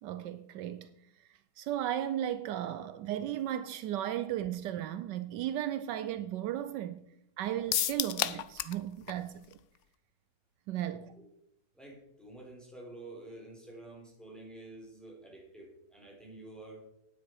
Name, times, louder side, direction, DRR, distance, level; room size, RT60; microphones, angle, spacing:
voice 1, 0.0-0.9 1.6-7.1 7.4-9.6 10.7-11.1, right 11 dB, 80° right, 1.2 m, -35 dB
sound 1, 7.7-8.8 9.1-9.2 9.5-9.6, left 11 dB, 70° left, 0.7 m, -31 dB
voice 2, 10.8-11.2 11.7-16.9, right 2 dB, ahead, 4.0 m, -49 dB
11.5 x 9.5 x 4.7 m
omnidirectional pair, 1.9 m